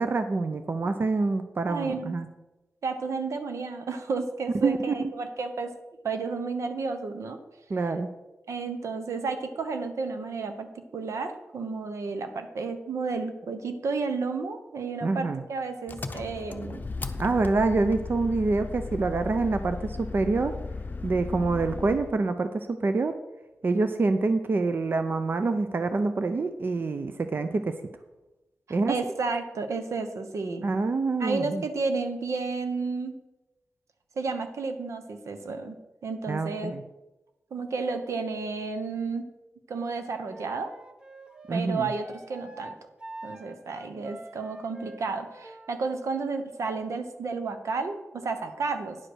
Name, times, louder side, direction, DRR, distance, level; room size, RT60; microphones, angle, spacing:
voice 1, 0.0-2.3 4.6-4.9 7.7-8.1 15.0-15.4 17.2-20.6 21.0-23.2 23.6-27.8 28.7-28.9 30.6-31.6 36.3-36.8 41.5-41.9, right 3 dB, 45° right, 9 dB, 0.5 m, -26 dB
voice 2, 1.7-2.2 2.8-5.7 6.0-7.4 8.5-16.8 28.7-30.7 31.2-33.1 34.2-36.7 37.5-39.3 39.7-40.7 41.5-42.7 43.2-49.0, right 4 dB, 85° right, 7 dB, 0.9 m, -32 dB
Engine, 15.9-22.2, left 3 dB, 35° left, 0.7 m, -36 dB
Wind instrument woodwind instrument, 40.3-45.7, right 2 dB, 20° right, 0.8 m, -46 dB
9.7 x 5.0 x 6.2 m, 1.0 s
wide cardioid pair, 115°, 5 cm